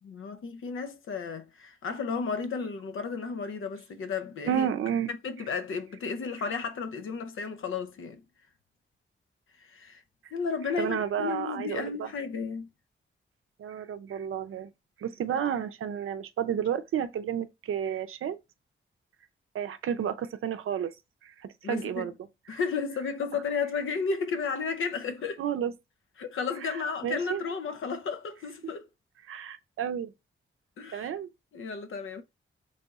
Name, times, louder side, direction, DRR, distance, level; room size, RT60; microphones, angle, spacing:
voice 1, 0.0-4.7 5.1-8.2 9.6-10.0 10.3-12.7 15.3-15.4 21.6-22.1 22.5-25.4 26.2-28.9 30.8-31.1 31.5-32.2, left 5 dB, 75° left, 0.6 m, -33 dB
voice 2, 4.5-5.1 10.8-12.1 13.6-14.7 15.0-18.4 19.5-20.9 21.2-22.1 22.5-22.6 25.4-25.7 26.6-26.8 27.0-27.4 29.3-30.1 30.9-31.3, right 9 dB, 90° right, 0.5 m, -31 dB
3.4 x 2.4 x 3.9 m
wide cardioid pair, 160°, 21 cm